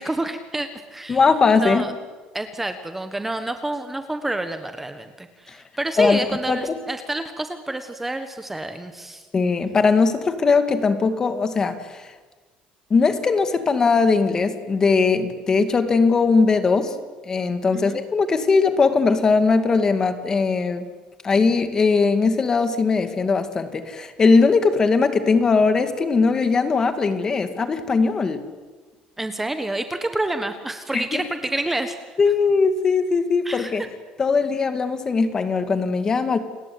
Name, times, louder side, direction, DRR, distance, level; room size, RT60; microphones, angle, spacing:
voice 1, 0.0-1.3 1.6-1.9 2.3-9.3 17.7-18.0 29.2-32.2 33.4-33.9, right 2 dB, 10° right, 8 dB, 1.4 m, -28 dB
voice 2, 1.1-1.8 5.5-5.6 6.0-6.7 9.3-12.1 12.9-17.0 17.2-20.9 21.2-28.4 30.9-31.2 32.2-33.8 34.2-36.4, left 4 dB, 25° left, 9 dB, 2.2 m, -20 dB
30.0 x 20.0 x 8.6 m, 1.4 s
cardioid pair, 150°, 3 cm